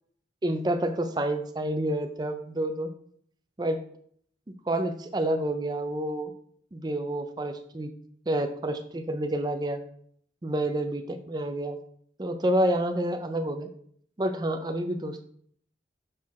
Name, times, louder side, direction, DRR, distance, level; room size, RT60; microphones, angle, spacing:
voice 1, 0.4-2.9 3.6-3.8 4.7-6.3 6.7-7.9 8.3-9.8 10.4-11.8 12.2-13.7 14.2-15.2, right 1 dB, 25° right, 8 dB, 0.4 m, -28 dB
6.4 x 4.2 x 4.1 m, 0.63 s
head